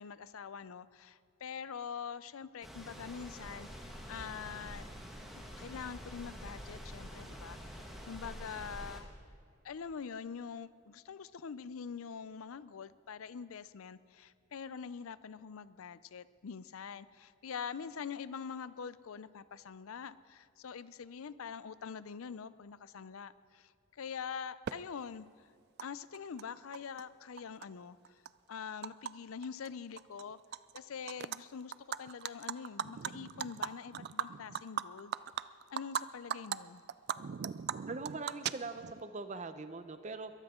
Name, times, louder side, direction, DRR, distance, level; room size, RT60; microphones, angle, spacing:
voice 1, 0.0-4.9 5.6-9.1 9.6-25.5 25.8-28.0 28.5-30.4 30.7-35.1 35.7-36.8, left 6 dB, 75° left, 16 dB, 0.5 m, -44 dB
sound 1, 2.6-9.0, equal, ahead, 1.6 m, -47 dB
Animal, 24.7-24.8 25.8-25.9 26.1-27.0 27.4-29.1 29.4-29.7 30.0-30.8 31.1-31.4 31.7-36.0 36.3-36.6 36.9-39.0, right 8 dB, 50° right, 0.3 m, -38 dB
voice 2, 37.9-40.3, right 3 dB, 35° right, 10 dB, 0.7 m, -42 dB
22.5 x 14.0 x 3.7 m, 2.3 s
head